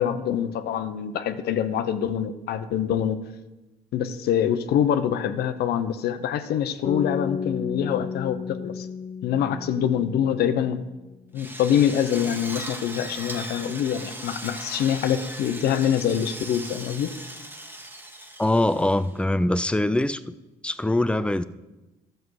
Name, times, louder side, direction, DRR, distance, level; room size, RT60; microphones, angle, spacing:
voice 1, 0.0-3.2 3.9-8.9 9.2-10.8 11.3-17.1, left 9 dB, 70° left, 10 dB, 0.8 m, -25 dB
sound 1, 6.8-11.1, left 6 dB, 35° left, 0.7 m, -34 dB
Drill, 11.3-19.2, right 1 dB, 10° right, 1.5 m, -38 dB
voice 2, 18.4-20.3 20.6-21.4, left 1 dB, 5° left, 14 dB, 0.5 m, -23 dB
12.0 x 7.7 x 4.8 m, 1.1 s
supercardioid pair, 80°, 17 cm